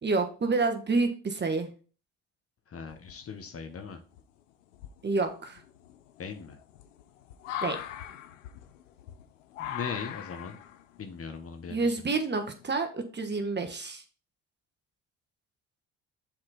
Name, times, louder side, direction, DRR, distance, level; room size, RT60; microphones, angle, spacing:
voice 1, 0.0-1.7 5.0-5.6 7.6-7.8 11.7-14.0, right 3 dB, 30° right, 6 dB, 1.3 m, -28 dB
voice 2, 2.7-4.0 6.2-6.6 9.6-10.6 11.0-12.0, left 6 dB, 40° left, 6 dB, 1.3 m, -39 dB
sound 1, 2.9-3.5 4.1-4.2 4.7-12.8, left 10 dB, 80° left, 0.7 m, -41 dB
7.6 x 4.4 x 4.0 m, 0.38 s
hypercardioid pair, 55°, 37 cm